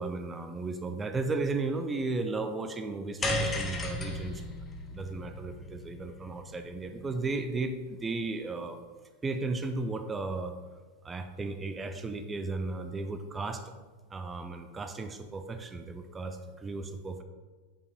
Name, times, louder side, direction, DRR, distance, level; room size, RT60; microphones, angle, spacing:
voice 1, 0.0-4.4 4.9-8.8 9.2-10.6 11.0-13.7 14.1-17.2, right 3 dB, 15° right, 7 dB, 0.4 m, -35 dB
sound 1, 3.2-7.6, left 2 dB, 20° left, 0.8 m, -35 dB
5.2 x 4.8 x 3.9 m, 1.4 s
figure-of-eight pair, 90°, 0 cm